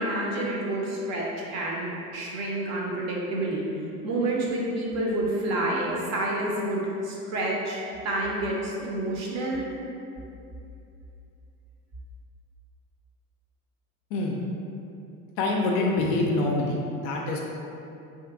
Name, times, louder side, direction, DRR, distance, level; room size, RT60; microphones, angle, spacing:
voice 1, 0.0-3.6 4.0-9.7, right 1 dB, 35° right, -3 dB, 0.5 m, -29 dB
voice 2, 15.4-16.8 17.0-17.4, left 2 dB, 50° left, -1 dB, 0.4 m, -25 dB
2.6 x 2.5 x 2.5 m, 2.7 s
figure-of-eight pair, 65°, 45 cm